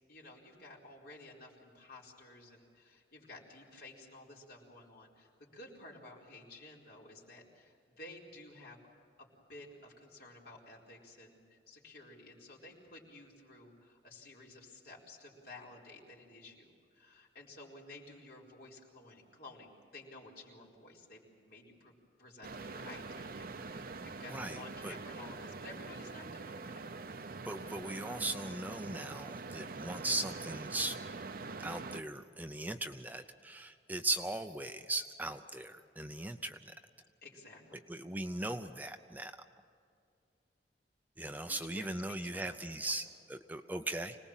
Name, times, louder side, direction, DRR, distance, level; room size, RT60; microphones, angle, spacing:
voice 1, 0.1-8.8 9.2-21.9 22.2-26.7 27.6-27.8 37.2-37.8 41.4-43.0, left 2 dB, 60° left, -3 dB, 4.5 m, -53 dB
sound 1, 22.4-32.0, right 3 dB, 55° right, 0.7 m, -44 dB
voice 2, 27.5-31.0 31.6-36.7 37.9-39.3 41.2-44.2, right 2 dB, 10° right, 7 dB, 0.6 m, -38 dB
25.5 x 19.5 x 7.4 m, 2.3 s
head